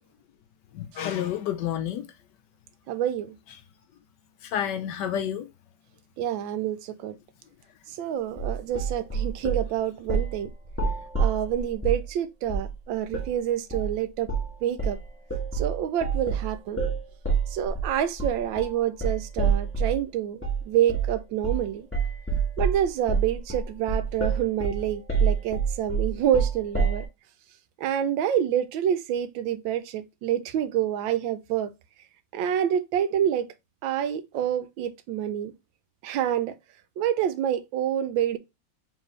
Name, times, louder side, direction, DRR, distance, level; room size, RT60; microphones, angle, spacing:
voice 1, 0.7-2.1 4.4-5.5, left 10 dB, 75° left, 1.0 m, -29 dB
voice 2, 2.9-3.4 6.2-7.2 7.9-10.5 11.2-14.3 14.6-15.0 15.5-16.8 17.5-21.9 22.6-27.0 27.8-31.7 32.3-33.5 33.8-35.5 36.0-36.5 37.0-38.4, right 10 dB, 75° right, 1.2 m, -27 dB
sound 1, 8.4-9.7 10.1-10.4 10.7-12.1 12.5-12.7 13.1-13.3 13.7-13.9 14.3-14.5 14.8-20.0 20.4-20.6 20.9-21.2 21.4-21.7 21.9-27.1, right 5 dB, 10° left, 0.7 m, -27 dB
4.5 x 3.3 x 3.1 m
omnidirectional pair, 2.3 m